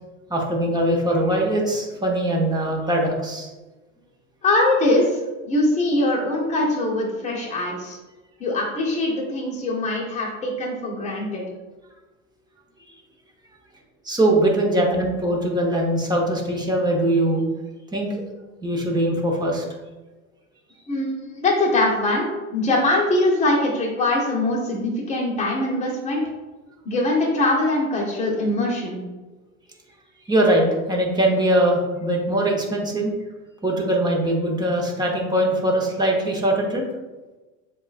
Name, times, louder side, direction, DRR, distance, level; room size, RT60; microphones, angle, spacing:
voice 1, 0.3-3.5 14.0-17.4 17.9-18.1 18.6-19.6 30.3-33.1 33.6-36.8, right 1 dB, 10° right, -1 dB, 1.0 m, -21 dB
voice 2, 4.4-8.0 8.4-11.4 20.9-26.2 26.8-29.0, left 2 dB, 15° left, -5 dB, 1.3 m, -22 dB
7.5 x 2.6 x 2.5 m, 1.2 s
hypercardioid pair, 95°, 39 cm